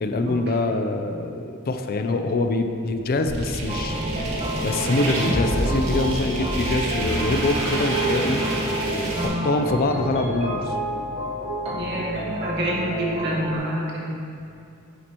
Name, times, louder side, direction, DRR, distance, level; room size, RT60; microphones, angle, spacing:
voice 1, 0.0-4.0 4.6-8.4 9.0-10.8, left 2 dB, 45° left, 6 dB, 0.5 m, -24 dB
sound 1, 3.3-9.3, right 1 dB, 80° right, 1.8 m, -26 dB
sound 2, 3.7-13.6, equal, 30° right, 1.2 m, -30 dB
voice 2, 9.1-9.5 11.7-14.1, right 1 dB, 55° right, -4 dB, 1.8 m, -28 dB
10.5 x 7.4 x 3.0 m, 2.5 s
head